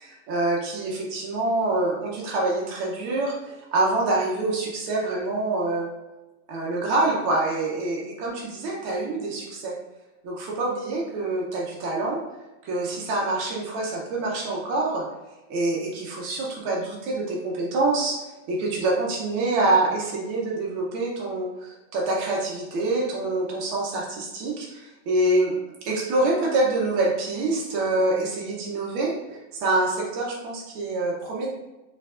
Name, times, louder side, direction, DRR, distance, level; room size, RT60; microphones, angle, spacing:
voice 1, 0.0-3.3 3.7-5.9 6.5-9.7 10.2-12.2 12.6-15.0 15.5-31.5, right 2 dB, 85° right, -3 dB, 1.1 m, -26 dB
4.6 x 4.4 x 2.4 m, 1.1 s
omnidirectional pair, 3.4 m